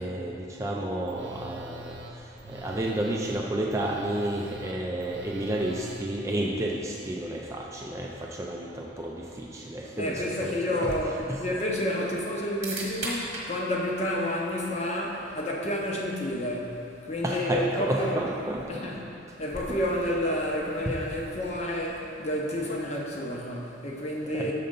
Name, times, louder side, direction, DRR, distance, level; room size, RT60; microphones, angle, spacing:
voice 1, 0.0-11.4 17.2-18.7 19.7-19.8 20.9-21.0 24.3-24.5, right 1 dB, 15° right, -2 dB, 0.4 m, -31 dB
Telephone, 1.1-6.0, right 2 dB, 65° right, 0.6 m, -44 dB
voice 2, 10.0-11.1 11.4-18.2 18.7-19.0 19.4-24.5, left 1 dB, 35° left, -2 dB, 0.8 m, -30 dB
sound 1, 10.2-22.1, right 2 dB, 35° right, 1.3 m, -44 dB
6.7 x 4.2 x 5.2 m, 2.7 s
head